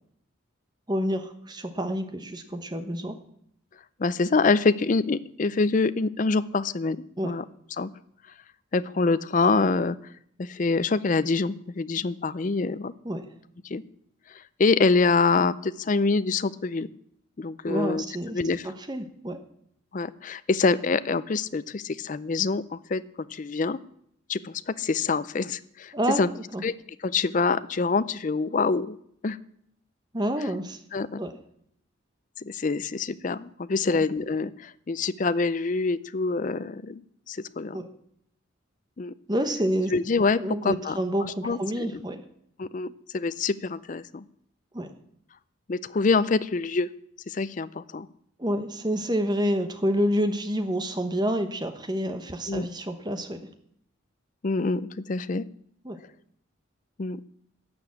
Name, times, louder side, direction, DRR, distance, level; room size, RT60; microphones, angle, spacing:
voice 1, 0.9-3.2 7.2-7.4 13.0-13.3 17.6-18.4 18.6-19.4 25.9-26.6 30.1-30.8 31.2-31.4 33.9-34.0 37.7-37.9 39.3-39.9 40.4-42.2 44.7-44.9 48.4-53.5 55.8-56.0, equal, 20° right, 8 dB, 1.1 m, -28 dB
voice 2, 4.0-7.0 7.2-7.4 7.8-7.9 8.7-10.0 10.4-12.9 13.6-13.8 14.6-16.9 17.4-18.0 18.3-18.7 19.9-23.0 23.3-23.8 24.3-26.3 26.6-26.7 27.0-29.0 29.2-29.4 30.9-31.2 32.4-37.0 37.3-37.8 39.0-39.1 39.9-42.0 42.6-44.2 45.7-46.9 47.3-48.1 52.5-52.7 54.4-55.4 57.0-57.2, left 4 dB, 40° left, 15 dB, 0.5 m, -25 dB
12.0 x 7.1 x 8.5 m, 0.69 s
head